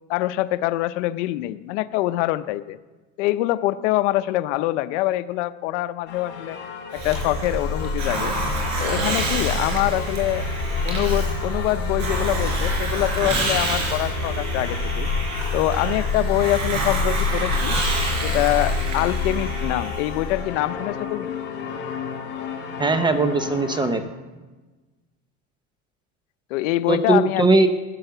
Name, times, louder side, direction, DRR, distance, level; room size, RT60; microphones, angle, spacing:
voice 1, 0.1-2.8 3.2-6.6 6.9-8.3 8.8-10.4 10.8-15.1 15.5-17.7 18.2-21.4 26.5-27.7, left 16 dB, 85° left, 12 dB, 0.7 m, -24 dB
sound 1, 6.1-24.0, left 6 dB, 30° left, 3.8 m, -35 dB
Hiss, 6.9-20.4, left 1 dB, 55° right, 4.6 m, -25 dB
voice 2, 22.8-24.0 26.9-27.7, right 3 dB, 15° right, 10 dB, 0.6 m, -19 dB
15.5 x 9.0 x 6.7 m, 1.2 s
cardioid pair, 150°, 35 cm